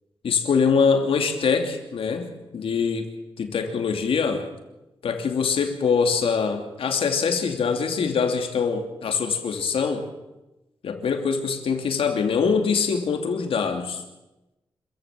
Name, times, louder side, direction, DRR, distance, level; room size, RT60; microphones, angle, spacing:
voice 1, 0.2-3.1 3.4-4.5 5.0-10.0 10.8-14.0, left 5 dB, 85° left, 5 dB, 2.8 m, -23 dB
26.5 x 15.0 x 7.6 m, 0.99 s
wide cardioid pair, 135°, 9 cm